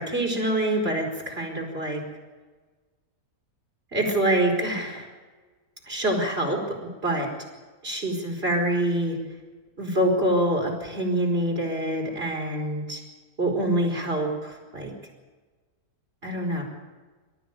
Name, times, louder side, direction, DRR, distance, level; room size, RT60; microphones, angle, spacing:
voice 1, 0.0-2.0 3.9-5.1 5.9-6.6 7.0-7.3 7.8-9.2 9.8-13.0 13.4-14.9 16.2-16.6, right 1 dB, 40° right, 2 dB, 5.0 m, -25 dB
26.5 x 14.0 x 9.1 m, 1.3 s
omnidirectional pair, 1.6 m